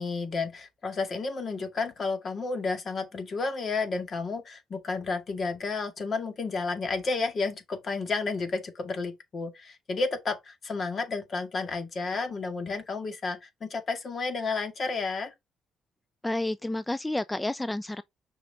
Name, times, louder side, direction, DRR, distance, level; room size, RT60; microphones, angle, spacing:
voice 1, 0.0-15.3, left 4 dB, 45° left, 2.1 m, -31 dB
voice 2, 16.2-18.0, left 1 dB, 10° left, 0.4 m, -30 dB
6.6 x 4.9 x 3.5 m
cardioid pair, 90°, 0 cm